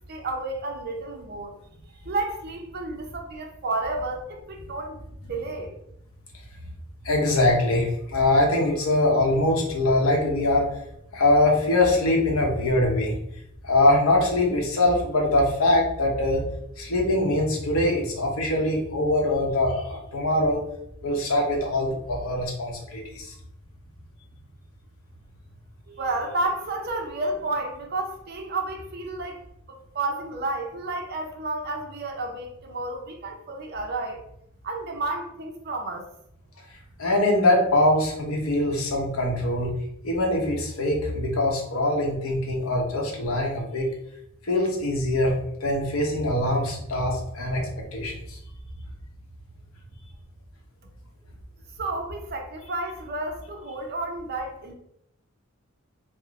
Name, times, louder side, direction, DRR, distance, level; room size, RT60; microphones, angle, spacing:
voice 1, 0.1-1.5 2.1-5.7 25.9-29.4 29.7-34.2 34.6-36.1 51.8-54.7, right 2 dB, 50° right, 3 dB, 0.6 m, -31 dB
voice 2, 7.0-10.7 11.1-13.1 13.6-16.4 16.8-20.6 21.0-23.3 37.0-39.7 40.0-43.9 44.4-45.3 45.6-47.6 47.9-48.4, left 1 dB, 90° left, 0 dB, 0.9 m, -23 dB
3.6 x 2.1 x 3.6 m, 0.77 s
head